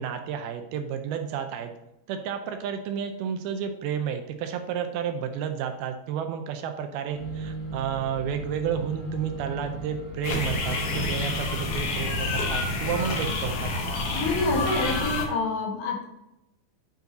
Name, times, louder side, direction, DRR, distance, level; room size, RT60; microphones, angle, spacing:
voice 1, 0.0-1.7 2.1-13.7, right 8 dB, 80° right, 6 dB, 2.4 m, -31 dB
sound 1, 7.1-12.4, right 2 dB, 50° left, 2.7 m, -37 dB
sound 2, 10.2-15.3, left 2 dB, 90° left, 1.3 m, -28 dB
voice 2, 14.1-16.1, left 3 dB, 70° left, 0 dB, 2.9 m, -27 dB
9.1 x 4.7 x 4.0 m, 0.90 s
omnidirectional pair, 4.7 m